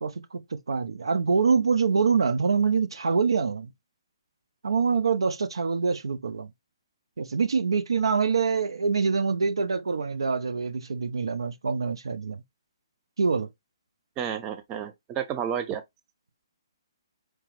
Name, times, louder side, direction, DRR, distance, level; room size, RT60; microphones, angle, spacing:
voice 1, 0.0-3.7 4.6-6.5 7.2-12.4 13.2-13.5, right 5 dB, 75° right, 0.5 m, -25 dB
voice 2, 14.2-15.8, right 8 dB, 20° right, 0.5 m, -31 dB
4.6 x 2.0 x 3.0 m
figure-of-eight pair, 135°, 3 cm